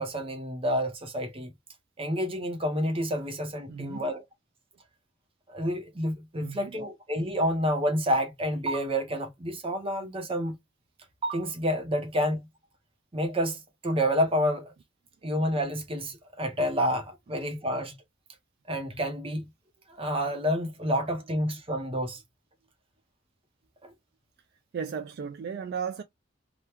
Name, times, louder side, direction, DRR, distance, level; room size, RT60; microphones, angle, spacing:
voice 1, 0.0-1.5 2.0-4.2 5.5-10.6 11.2-12.4 13.1-14.7 15.2-17.9 18.7-19.5 20.0-22.2 23.8-23.9, equal, 25° right, 0.8 m, -29 dB
voice 2, 3.7-4.1 6.4-6.8 24.7-26.0, right 6 dB, 50° right, 0.3 m, -35 dB
3.0 x 2.3 x 3.2 m
head